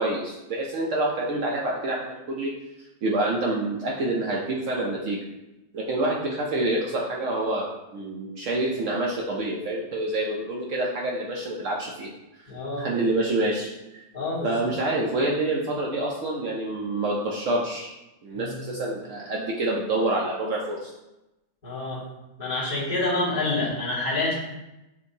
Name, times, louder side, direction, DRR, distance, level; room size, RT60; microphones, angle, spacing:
voice 1, 0.0-2.5 3.0-5.2 5.7-12.1 12.8-13.7 14.4-17.9 18.2-20.9, right 2 dB, 70° right, -2 dB, 0.7 m, -27 dB
voice 2, 12.5-12.9 14.1-14.5 18.3-18.7 21.6-22.0 22.4-24.3, left 2 dB, 25° left, -12 dB, 1.4 m, -27 dB
6.5 x 2.6 x 2.6 m, 0.97 s
omnidirectional pair, 1.8 m